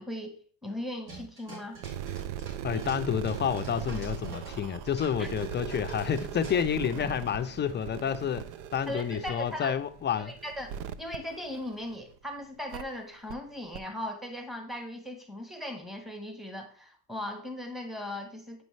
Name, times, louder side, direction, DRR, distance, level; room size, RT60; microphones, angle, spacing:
voice 1, 0.0-1.8 5.2-5.3 8.9-9.7 10.2-10.7 11.0-18.6, left 1 dB, ahead, 5 dB, 1.2 m, -38 dB
sound 1, 1.1-4.6 4.8-6.9, right 2 dB, 55° right, 3.6 m, -48 dB
sound 2, 1.7-12.1 12.7-12.8 13.3-13.4 13.7-13.8, right 9 dB, 80° right, 0.5 m, -39 dB
voice 2, 2.6-8.4 8.7-10.3, left 8 dB, 30° left, 10 dB, 0.4 m, -29 dB
8.1 x 5.3 x 3.2 m, 0.43 s
supercardioid pair, 105°, 39 cm